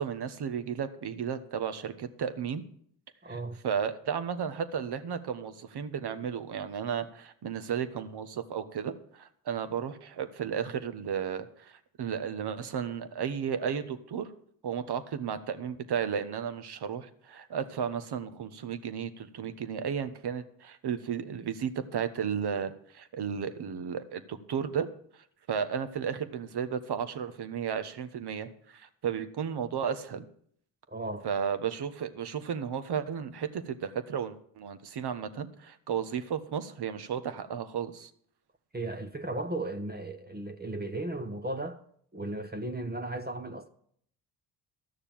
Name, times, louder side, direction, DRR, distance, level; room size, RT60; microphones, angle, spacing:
voice 1, 0.0-2.6 3.3-3.4 3.6-14.3 14.6-24.9 25.5-30.2 31.2-38.1, right 7 dB, 50° right, 1.3 m, -34 dB
voice 2, 3.2-3.6 30.9-31.3 38.7-41.8 42.1-43.7, right 2 dB, 20° right, 1.0 m, -35 dB
12.5 x 6.6 x 7.5 m
supercardioid pair, 60°, 50 cm